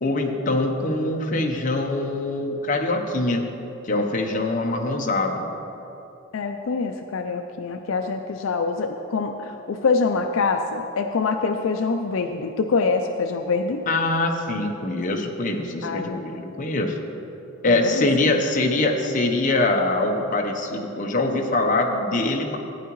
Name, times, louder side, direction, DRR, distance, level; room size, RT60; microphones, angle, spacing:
voice 1, 0.0-3.4 3.8-5.5 13.9-17.0 17.6-22.6, left 2 dB, 40° left, 2 dB, 0.9 m, -23 dB
voice 2, 6.3-13.9 15.8-16.3 17.7-18.4, left 4 dB, 75° left, 6 dB, 0.4 m, -25 dB
14.5 x 9.3 x 3.1 m, 2.9 s
head